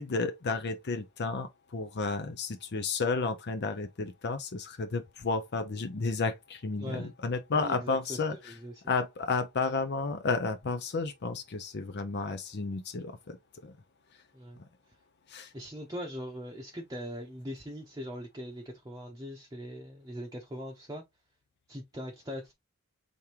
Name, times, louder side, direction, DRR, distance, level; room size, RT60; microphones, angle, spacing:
voice 1, 0.0-8.4 8.9-13.4 13.6-13.7 15.3-15.5, left 4 dB, 50° left, 0.6 m, -32 dB
voice 2, 6.8-7.1 7.5-8.8 14.3-14.6 15.5-21.0 21.7-22.5, equal, 15° right, 0.8 m, -41 dB
5.1 x 3.5 x 2.8 m
head